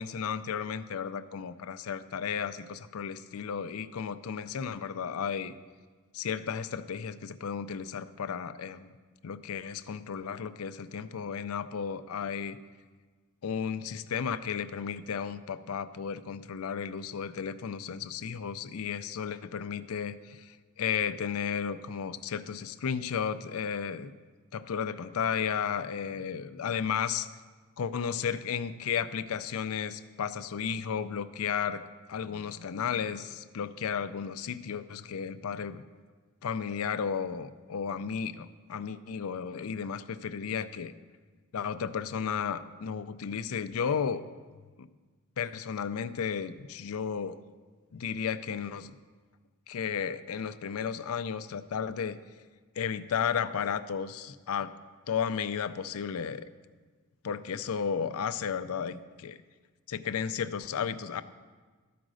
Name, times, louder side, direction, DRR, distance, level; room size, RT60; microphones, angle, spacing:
voice 1, 0.0-5.5 6.1-8.9 9.2-12.6 13.4-24.1 24.5-27.3 27.8-31.8 32.1-35.8 36.4-40.9 41.5-44.2 44.8-44.9 45.4-47.4 47.9-49.0 49.7-52.2 52.8-54.7 55.1-56.5 57.2-59.4 59.9-61.2, left 7 dB, 75° left, 12 dB, 0.4 m, -33 dB
12.5 x 5.1 x 6.2 m, 1.4 s
head